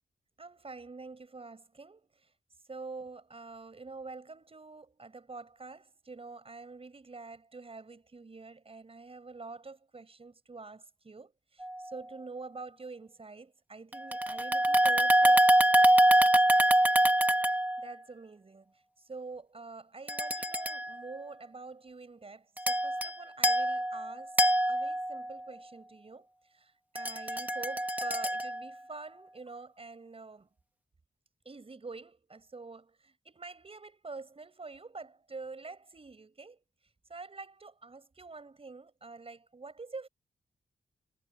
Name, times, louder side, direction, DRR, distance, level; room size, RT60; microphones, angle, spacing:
voice 1, 0.4-2.3 2.7-15.5 17.8-24.4 24.7-30.5 31.4-36.6 37.1-40.1, right 3 dB, 35° right, 6.0 m, -46 dB
sound 1, 11.6-11.8 13.9-17.9 20.1-20.9 22.6-23.1 23.4-25.3 26.9-28.7, right 1 dB, 10° right, 1.8 m, -25 dB
wide cardioid pair, 120°, 17 cm